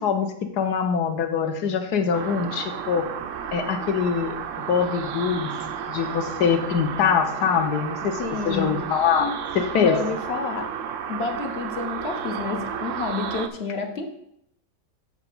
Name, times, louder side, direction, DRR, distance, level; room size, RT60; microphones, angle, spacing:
voice 1, 0.0-3.1 3.5-5.5 5.9-8.2 8.4-10.0, left 7 dB, 70° left, 6 dB, 1.4 m, -23 dB
sound 1, 2.1-13.5, right 8 dB, 65° right, 0.7 m, -32 dB
voice 2, 8.2-8.8 9.8-10.7 11.1-14.1, left 4 dB, 45° left, 5 dB, 0.9 m, -29 dB
8.2 x 4.8 x 5.4 m, 0.75 s
omnidirectional pair, 1.9 m